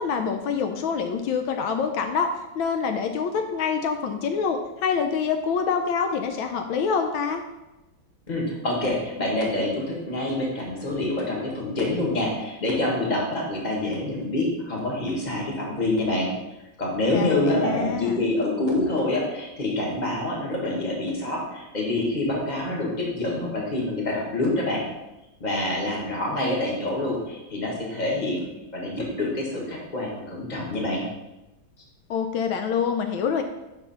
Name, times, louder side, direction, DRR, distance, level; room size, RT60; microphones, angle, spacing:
voice 1, 0.0-2.3 2.5-7.4 17.1-18.2 32.1-33.4, left 6 dB, 80° left, 6 dB, 1.3 m, -26 dB
voice 2, 8.3-16.3 16.8-24.8 25.4-28.4 28.7-31.0, left 2 dB, 25° left, -3 dB, 1.5 m, -26 dB
5.6 x 4.6 x 5.7 m, 1.0 s
omnidirectional pair, 2.2 m